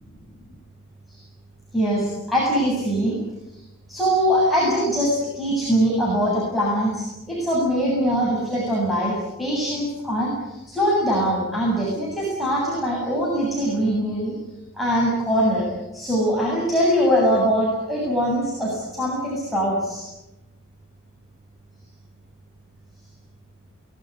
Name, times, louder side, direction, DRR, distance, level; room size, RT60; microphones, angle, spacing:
voice 1, 1.7-3.2 3.9-14.3 14.7-15.7 15.9-20.0, equal, ahead, -6 dB, 7.9 m, -22 dB
24.0 x 20.5 x 9.6 m, 0.96 s
head